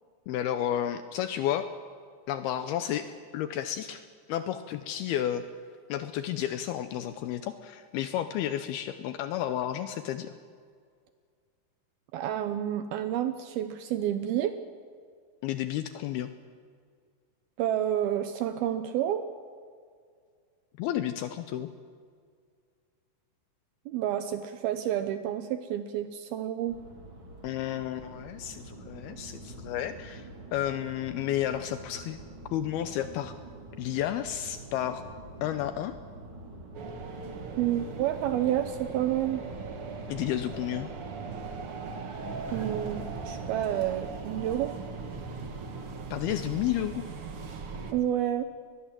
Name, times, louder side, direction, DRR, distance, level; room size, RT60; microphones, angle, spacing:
voice 1, 0.3-1.7 2.3-4.0 4.3-5.4 5.9-10.3 15.4-16.3 20.8-21.7 27.4-32.2 32.5-33.3 33.8-35.1 35.4-36.0 40.1-40.9 46.1-47.1, left 11 dB, 80° left, 10 dB, 2.3 m, -32 dB
voice 2, 12.1-14.6 17.6-19.3 23.9-26.8 37.6-39.4 42.5-44.8 47.9-48.4, right 11 dB, 80° right, 10 dB, 2.3 m, -29 dB
sound 1, 26.7-46.4, right 2 dB, 35° right, 2.7 m, -46 dB
sound 2, 36.7-47.9, right 4 dB, 55° right, 1.5 m, -39 dB
23.0 x 20.5 x 7.5 m, 2.1 s
omnidirectional pair, 5.1 m